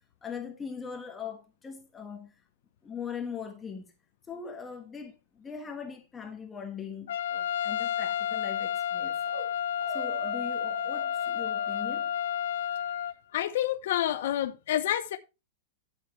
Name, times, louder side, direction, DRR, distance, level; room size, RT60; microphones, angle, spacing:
voice 1, 0.2-2.4 2.8-3.9 4.3-9.2 9.9-12.1, left 6 dB, 10° left, 1.3 m, -41 dB
Trumpet, 7.1-13.1, left 9 dB, 75° left, 1.2 m, -31 dB
sound 1, 9.3-9.5 9.8-12.6, right 5 dB, 40° right, 5.3 m, -44 dB
voice 2, 13.3-15.2, left 12 dB, 55° left, 0.9 m, -28 dB
13.0 x 7.3 x 3.2 m
supercardioid pair, 175°, 0 cm